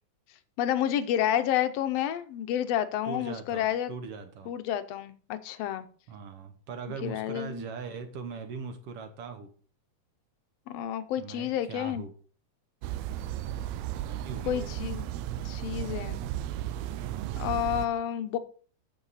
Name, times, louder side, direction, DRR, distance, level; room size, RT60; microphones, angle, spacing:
voice 1, 0.6-3.9 4.5-5.9 7.0-7.6 10.7-12.0 14.5-15.0 15.4-16.2 17.4-18.4, left 11 dB, 75° left, 12 dB, 1.6 m, -30 dB
voice 2, 3.1-4.5 6.1-9.5 11.2-12.1 13.9-14.7, right 5 dB, 65° right, 7 dB, 1.7 m, -40 dB
sound 1, 12.8-17.9, right 12 dB, 80° right, 1.7 m, -34 dB
8.8 x 7.2 x 4.0 m, 0.42 s
omnidirectional pair, 3.4 m